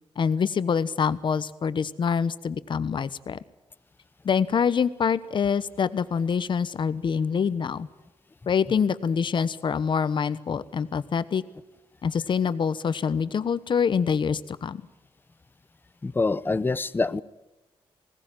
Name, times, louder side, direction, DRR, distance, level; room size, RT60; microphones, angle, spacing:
voice 1, 0.2-3.4 4.2-7.9 8.5-11.4 12.0-14.8, left 6 dB, 55° left, 15 dB, 1.1 m, -25 dB
voice 2, 16.0-17.2, left 3 dB, 20° left, 15 dB, 0.7 m, -25 dB
20.5 x 17.5 x 9.1 m, 1.0 s
cardioid pair, 100°, 10 cm